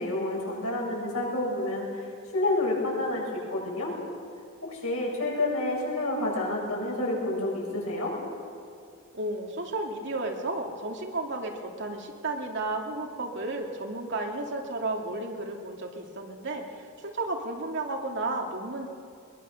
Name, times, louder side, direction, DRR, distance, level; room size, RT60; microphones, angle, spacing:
voice 1, 0.0-2.1 2.3-3.2 3.5-3.9 4.6-8.1, left 2 dB, 90° left, -2 dB, 7.5 m, -29 dB
voice 2, 9.1-18.9, right 2 dB, 55° right, 1 dB, 2.4 m, -33 dB
22.0 x 21.5 x 6.5 m, 2.4 s
head